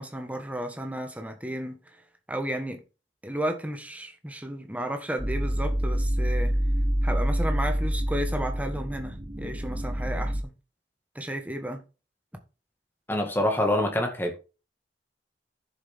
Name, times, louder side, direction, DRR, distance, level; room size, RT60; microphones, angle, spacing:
voice 1, 0.0-2.0 2.3-2.8 3.2-6.6 7.0-10.5 11.1-11.8, right 1 dB, 10° right, 1.5 m, -33 dB
sound 1, 5.2-10.4, equal, 30° right, 1.1 m, -27 dB
voice 2, 13.1-14.4, left 1 dB, 10° left, 1.9 m, -25 dB
11.0 x 7.0 x 3.7 m
head